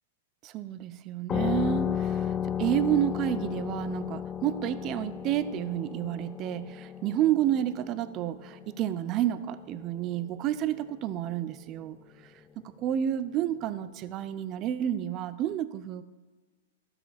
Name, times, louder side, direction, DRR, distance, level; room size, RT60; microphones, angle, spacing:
voice 1, 0.4-12.0 12.6-16.0, right 11 dB, 35° right, 14 dB, 0.6 m, -30 dB
sound 1, 1.3-10.5, left 8 dB, 20° left, 0.6 m, -34 dB
12.5 x 6.8 x 4.2 m, 1.4 s
hypercardioid pair, 125°, 0 cm